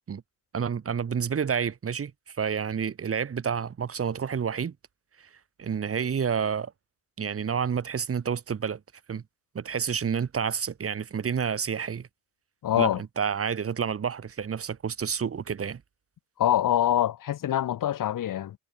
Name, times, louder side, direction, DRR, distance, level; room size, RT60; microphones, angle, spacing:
voice 1, 0.5-4.7 5.2-5.3 5.6-6.7 7.2-8.8 9.1-9.2 9.5-12.1 12.8-15.8, right 7 dB, 45° right, 4.5 m, -29 dB
voice 2, 12.6-13.0 16.4-18.6, left 11 dB, 70° left, 5.2 m, -25 dB
cardioid pair, 115°, 33 cm